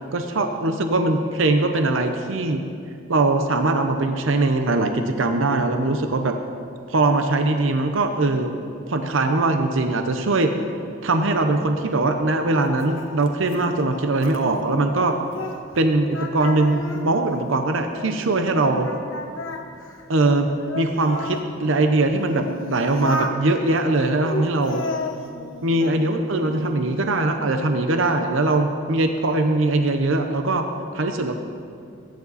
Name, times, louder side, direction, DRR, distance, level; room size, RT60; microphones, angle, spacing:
voice 1, 0.1-2.6 3.1-6.4 6.9-8.5 8.9-10.5 11.0-15.2 15.8-18.9 20.1-20.5 20.7-24.8 25.6-30.7 30.9-31.4, right 2 dB, 85° right, 6 dB, 0.8 m, -21 dB
Singing, 11.3-15.8 16.1-18.5 18.8-21.5 22.1-23.4 24.0-26.0 26.4-26.9, left 2 dB, 85° left, 1.1 m, -34 dB
20.5 x 9.6 x 4.2 m, 2.4 s
head